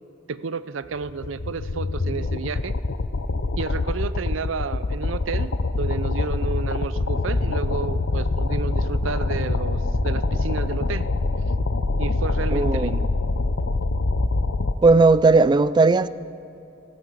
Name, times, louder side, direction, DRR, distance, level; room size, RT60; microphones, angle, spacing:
voice 1, 0.3-2.7 3.6-11.1 12.0-13.0, right 5 dB, 75° right, 15 dB, 0.5 m, -31 dB
sound 1, 1.0-14.7, left 2 dB, 70° left, 0.7 m, -24 dB
voice 2, 12.5-12.9 14.8-16.1, right 3 dB, 20° right, 16 dB, 0.3 m, -16 dB
15.0 x 12.0 x 7.5 m, 2.8 s
head